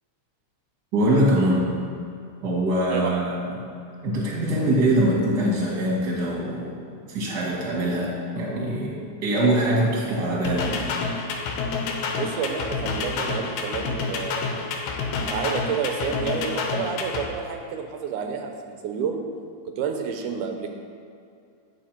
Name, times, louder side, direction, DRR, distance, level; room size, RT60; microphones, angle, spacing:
voice 1, 0.9-1.7 2.4-3.6 4.0-6.7 7.1-10.8, right 1 dB, 35° right, -4 dB, 2.2 m, -23 dB
sound 1, 10.4-17.3, left 4 dB, 85° left, 2.3 m, -28 dB
voice 2, 12.1-14.6 15.3-19.2 19.8-20.7, right 6 dB, 85° right, 4 dB, 2.2 m, -29 dB
9.0 x 6.8 x 4.5 m, 2.4 s
omnidirectional pair, 3.5 m